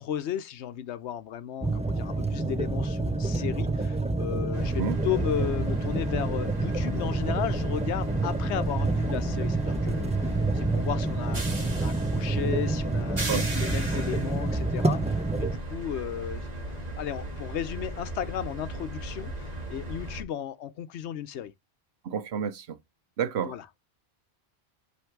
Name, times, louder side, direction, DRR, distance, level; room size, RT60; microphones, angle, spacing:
voice 1, 0.0-16.5 17.0-21.5 23.4-23.6, left 10 dB, 85° left, 1.0 m, -34 dB
sound 1, 1.6-15.6, right 2 dB, 10° right, 0.4 m, -28 dB
sound 2, 4.5-20.2, right 1 dB, 40° right, 1.7 m, -36 dB
voice 2, 22.0-22.8 23.2-23.5, right 7 dB, 75° right, 1.0 m, -30 dB
7.9 x 3.2 x 4.5 m
omnidirectional pair, 1.1 m